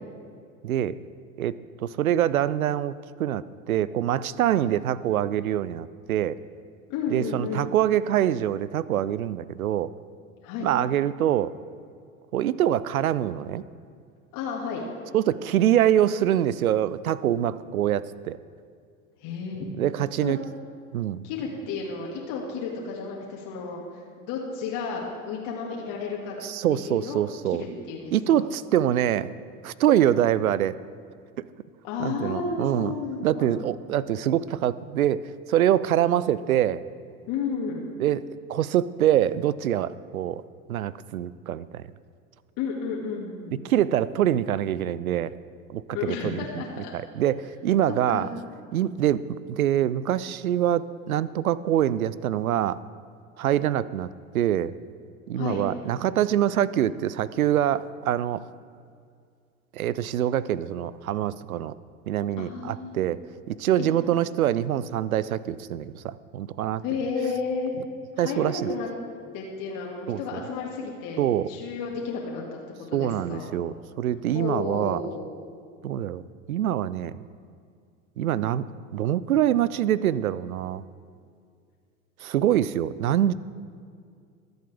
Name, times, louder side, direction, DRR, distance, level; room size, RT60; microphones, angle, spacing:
voice 1, 0.6-1.0 1.4-2.9 3.2-6.4 7.1-9.9 10.6-11.5 12.3-13.6 15.1-18.4 19.8-20.4 20.9-21.3 26.4-27.6 28.1-29.3 29.6-30.8 31.4-31.5 32.0-32.9 33.2-36.8 38.0-40.4 40.7-41.8 43.6-45.3 45.7-46.6 46.9-48.3 48.7-52.8 53.4-54.1 54.3-54.7 55.3-58.4 59.7-61.7 62.1-63.2 63.5-66.8 68.2-68.7 70.1-70.4 71.2-71.5 72.9-75.0 75.8-76.2 76.5-77.2 78.2-78.7 78.9-80.8 82.2-83.3, right 11 dB, 85° right, 18 dB, 0.5 m, -25 dB
voice 2, 6.9-7.6 10.4-10.7 14.3-14.8 19.2-19.9 20.2-20.3 21.2-26.4 26.7-27.2 27.5-28.4 31.8-33.7 37.3-37.9 42.6-43.6 45.9-46.9 47.9-48.3 55.3-55.7 62.4-63.0 63.8-63.9 66.8-67.8 68.2-68.9 69.3-72.4 72.9-73.5 74.3-75.3, left 5 dB, 50° left, -2 dB, 2.1 m, -32 dB
23.0 x 7.9 x 3.5 m, 2.2 s
figure-of-eight pair, 80°, 42 cm